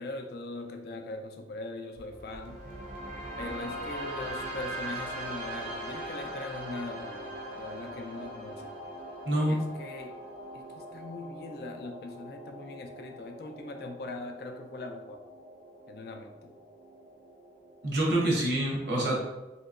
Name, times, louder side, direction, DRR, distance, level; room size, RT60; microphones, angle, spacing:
voice 1, 0.0-2.6 3.4-8.8 9.5-10.2 10.5-15.2 15.9-16.5, left 2 dB, 60° left, 4 dB, 0.4 m, -41 dB
sound 1, 2.0-18.0, right 1 dB, 45° right, 0.6 m, -41 dB
voice 2, 9.2-9.6 17.8-19.2, right 1 dB, 75° right, -2 dB, 0.9 m, -26 dB
2.9 x 2.9 x 2.4 m, 1.1 s
head